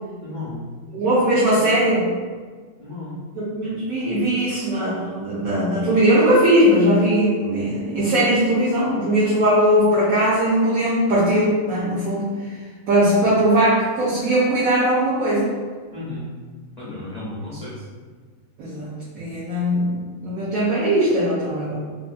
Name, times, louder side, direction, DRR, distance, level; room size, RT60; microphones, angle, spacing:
voice 1, 0.2-0.6 2.8-3.2 15.9-16.3 16.8-17.8, left 2 dB, 75° left, -8 dB, 0.3 m, -33 dB
voice 2, 0.9-2.1 3.4-12.6 12.9-15.5 18.6-21.8, right 1 dB, 65° right, -8 dB, 1.1 m, -19 dB
3.8 x 2.5 x 2.5 m, 1.5 s
omnidirectional pair, 1.8 m